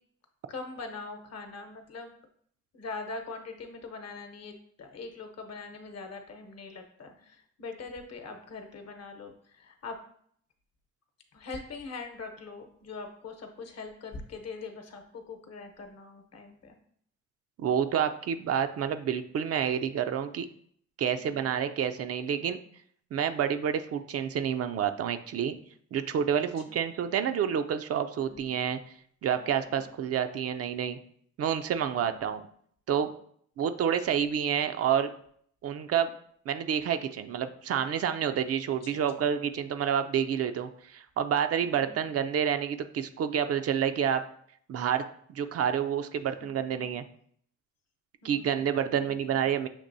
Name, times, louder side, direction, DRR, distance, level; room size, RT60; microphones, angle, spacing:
voice 1, 0.5-2.1 2.7-10.0 11.3-16.7 21.2-21.6 26.4-26.8 28.2-28.6 29.4-30.0 31.9-32.3 38.7-39.2 41.6-42.0 46.6-46.9 48.2-49.5, left 4 dB, 55° left, 5 dB, 0.9 m, -43 dB
voice 2, 17.6-20.5 21.0-22.6 23.1-25.6 25.9-28.8 29.2-31.0 31.4-32.4 32.9-33.1 33.6-35.1 35.6-36.1 36.5-44.2 44.7-45.1 45.3-47.0 48.2-49.7, right 8 dB, 55° right, 9 dB, 0.4 m, -28 dB
6.7 x 2.9 x 2.7 m, 0.62 s
cardioid pair, 90°, 30 cm